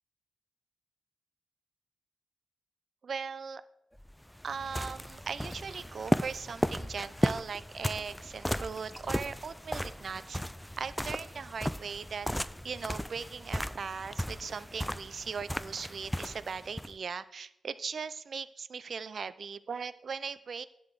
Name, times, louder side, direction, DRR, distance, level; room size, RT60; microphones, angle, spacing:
voice 1, 3.0-3.6 4.4-10.4 10.8-12.3 12.6-20.7, right 5 dB, 55° right, 14 dB, 0.5 m, -39 dB
sound 1, 4.0-16.9, equal, 5° left, 0.3 m, -35 dB
10.5 x 3.9 x 7.6 m, 0.82 s
cardioid pair, 95°, 0 cm